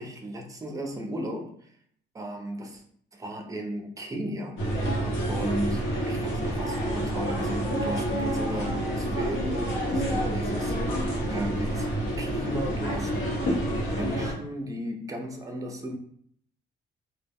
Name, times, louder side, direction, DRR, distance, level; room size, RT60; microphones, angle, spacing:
voice 1, 0.0-1.7 2.1-2.8 3.1-5.0 5.3-10.7 11.2-11.9 12.2-13.5 13.8-16.0, right 1 dB, 15° right, 4 dB, 0.5 m, -35 dB
sound 1, 4.6-14.3, right 1 dB, 75° left, 0.9 m, -28 dB
2.1 x 2.0 x 3.5 m, 0.63 s
cardioid pair, 90°, 20 cm